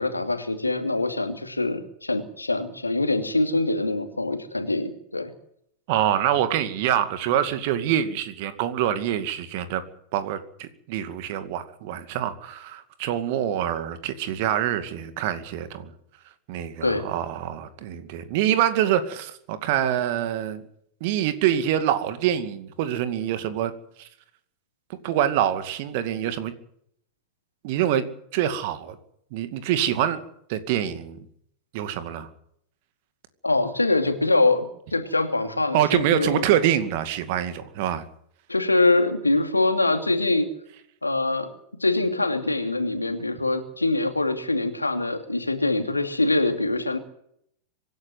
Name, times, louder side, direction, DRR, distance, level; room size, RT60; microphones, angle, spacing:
voice 1, 0.0-5.3 16.8-17.1 33.4-34.7 34.9-36.4 38.5-40.5 41.0-41.5 41.8-47.0, left 2 dB, 80° left, 7 dB, 2.6 m, -24 dB
voice 2, 5.9-9.8 10.1-15.9 16.5-20.6 21.0-23.7 24.0-24.1 25.0-26.5 27.6-28.0 28.3-29.0 29.3-30.2 30.5-31.2 31.7-32.3 35.7-38.0, right 11 dB, 50° right, 11 dB, 2.3 m, -25 dB
25.0 x 11.5 x 9.6 m, 0.70 s
figure-of-eight pair, 90°, 0 cm